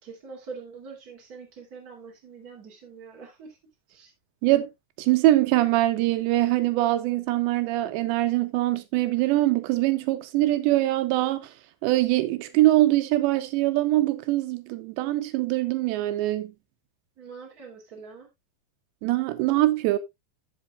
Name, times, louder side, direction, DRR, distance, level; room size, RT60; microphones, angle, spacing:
voice 1, 0.0-3.6 3.9-4.1 17.2-18.3, right 5 dB, 25° right, 2.4 m, -44 dB
voice 2, 5.0-11.5 11.8-16.5 19.0-20.0, right 16 dB, 85° right, 2.9 m, -23 dB
15.5 x 5.3 x 2.4 m
omnidirectional pair, 5.1 m